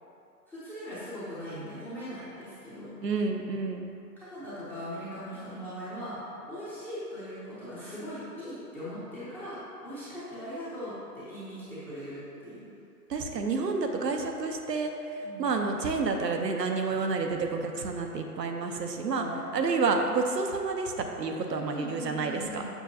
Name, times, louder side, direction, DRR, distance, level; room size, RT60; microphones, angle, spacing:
voice 1, 0.5-3.0 4.2-12.7 15.2-15.5 19.1-19.5 21.4-22.6, equal, 5° left, -13 dB, 0.7 m, -40 dB
voice 2, 3.0-3.8 13.1-14.9 15.4-19.2 19.5-22.6, right 4 dB, 80° right, 4 dB, 0.9 m, -29 dB
7.3 x 5.7 x 2.7 m, 2.7 s
hypercardioid pair, 135°, 49 cm